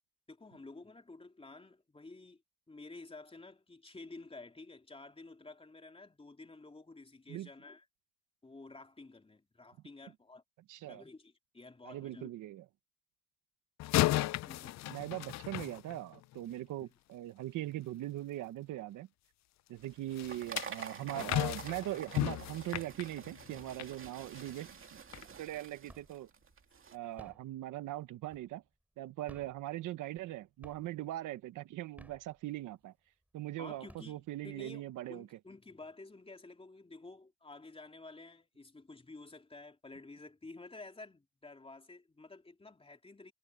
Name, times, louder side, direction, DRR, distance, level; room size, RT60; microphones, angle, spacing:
voice 1, 0.3-2.4 2.7-7.8 8.4-10.4 10.9-12.3 14.5-14.8 16.8-16.9 33.6-43.3, left 3 dB, 20° left, 3.3 m, -51 dB
voice 2, 10.7-11.0 11.8-12.6 14.9-19.1 19.7-24.8 25.4-26.3 26.9-28.6 29.0-32.9 33.3-35.3, right 15 dB, 85° right, 1.2 m, -41 dB
sound 1, 13.8-16.4 20.2-23.9 24.4-24.6 25.1-25.2, left 16 dB, 65° left, 0.4 m, -35 dB
sound 2, 19.8-27.0, right 6 dB, 45° right, 2.4 m, -48 dB
sound 3, 24.5-25.0 25.3-26.3 27.0-28.8 29.2-30.3 30.6-31.2 31.8-32.8 33.3-33.4 33.7-34.6, right 1 dB, 5° right, 6.2 m, -57 dB
cardioid pair, 90°, 30 cm